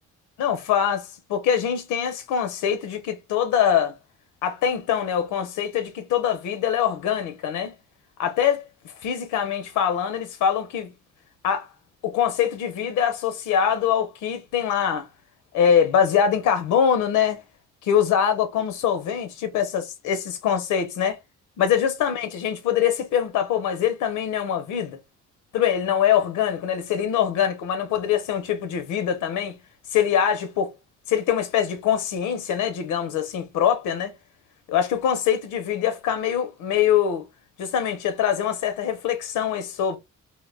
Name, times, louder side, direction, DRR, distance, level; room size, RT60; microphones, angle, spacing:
voice 1, 0.4-3.9 4.4-7.7 8.2-8.6 9.0-10.9 11.4-11.7 12.0-15.1 15.5-17.4 17.8-21.2 21.6-25.0 25.5-29.5 29.9-30.7 31.1-34.1 34.7-37.3 37.6-40.0, left 8 dB, 85° left, 0.6 m, -23 dB
2.1 x 2.1 x 3.0 m
cardioid pair, 90°, 30 cm